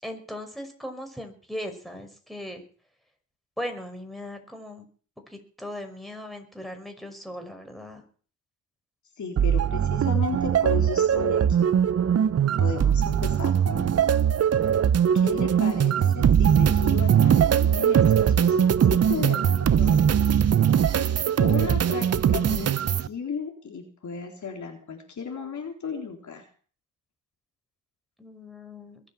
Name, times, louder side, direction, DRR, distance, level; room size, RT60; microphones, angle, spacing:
voice 1, 0.0-2.6 3.6-4.9 5.3-8.0 28.2-29.0, left 1 dB, ahead, 5 dB, 5.5 m, -38 dB
voice 2, 9.2-11.7 12.6-13.9 15.1-20.2 21.0-21.1 21.4-26.4, left 5 dB, 50° left, 2 dB, 4.0 m, -35 dB
sound 1, 9.4-23.1, right 8 dB, 40° right, 0.9 m, -21 dB
22.0 x 8.0 x 7.3 m, 0.43 s
supercardioid pair, 65°, 38 cm